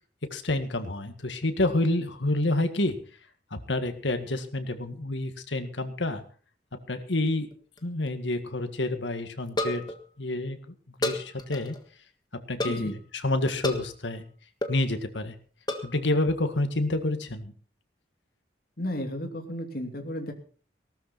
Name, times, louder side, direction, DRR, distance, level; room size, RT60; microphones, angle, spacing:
voice 1, 0.2-3.0 3.5-6.2 6.9-7.5 7.8-10.7 11.0-11.8 12.3-14.2 14.7-15.3 15.8-17.5, left 2 dB, 90° left, 8 dB, 1.9 m, -28 dB
sound 1, 7.3-7.8 8.1-8.2 8.3-8.4 9.5-10.0 11.0-11.8 12.6-12.9 13.6-13.9 14.6-14.8 15.7-16.0, left 1 dB, 25° left, 1.6 m, -31 dB
voice 2, 12.7-13.0 18.8-20.3, left 1 dB, 55° left, 4 dB, 2.7 m, -33 dB
18.5 x 13.0 x 4.3 m, 0.41 s
head